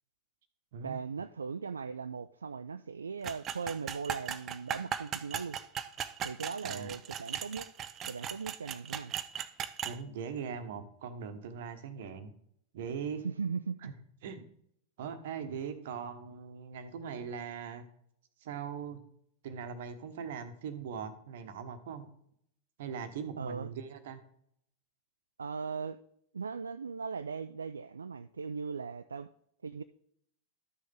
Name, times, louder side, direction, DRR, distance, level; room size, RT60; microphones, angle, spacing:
voice 1, 0.8-5.6 6.2-7.7 8.0-9.1 13.2-13.9 23.4-23.7 25.4-26.0 26.3-29.3 29.6-29.8, right 5 dB, 75° right, 11 dB, 0.3 m, -38 dB
sound 1, 3.2-10.0, right 9 dB, 30° right, 0.6 m, -38 dB
voice 2, 6.6-6.9 9.8-12.3 12.7-13.2 13.8-13.9 14.2-14.4 15.0-17.8 18.4-19.0 19.4-22.1 22.8-24.2, right 6 dB, 55° right, 9 dB, 1.1 m, -40 dB
12.5 x 6.5 x 3.6 m, 0.70 s
figure-of-eight pair, 90°, 0 cm